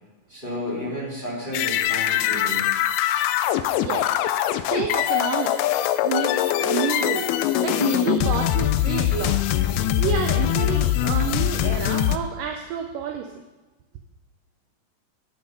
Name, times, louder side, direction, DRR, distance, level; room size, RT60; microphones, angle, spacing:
voice 1, 0.3-2.6, left 1 dB, 15° left, -7 dB, 2.9 m, -32 dB
sound 1, 1.5-12.2, left 12 dB, 85° left, 2.4 m, -22 dB
voice 2, 3.8-4.2 4.6-5.8 6.0-7.3 7.6-9.5 10.0-13.4, right 7 dB, 80° right, 4 dB, 2.0 m, -29 dB
10.5 x 7.7 x 5.3 m, 1.2 s
omnidirectional pair, 4.4 m